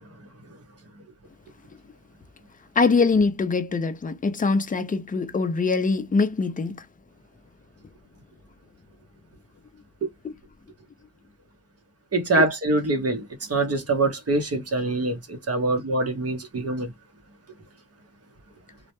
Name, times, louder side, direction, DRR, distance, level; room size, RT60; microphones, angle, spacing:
voice 1, 2.8-6.9 12.4-12.5, left 4 dB, 20° left, 0.4 m, -23 dB
voice 2, 12.1-16.9, right 2 dB, 35° right, 0.7 m, -24 dB
2.1 x 2.1 x 2.8 m
wide cardioid pair, 125°, 41 cm